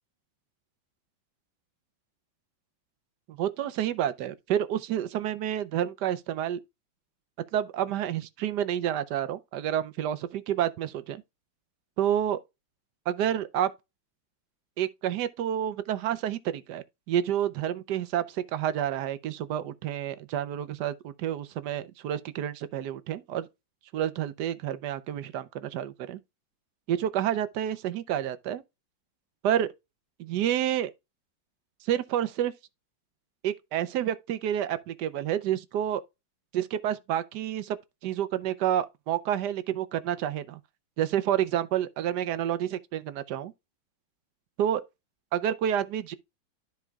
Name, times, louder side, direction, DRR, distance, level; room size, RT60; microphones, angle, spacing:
voice 1, 3.3-6.6 7.5-11.2 12.0-12.4 13.1-13.7 14.8-23.5 23.9-26.2 26.9-28.6 29.4-29.7 30.2-30.9 31.8-32.5 33.4-36.0 36.5-37.8 38.0-40.6 41.0-43.5 44.6-44.8 45.3-46.1, right 10 dB, 65° right, 1.2 m, -29 dB
13.0 x 4.5 x 2.3 m
omnidirectional pair, 2.1 m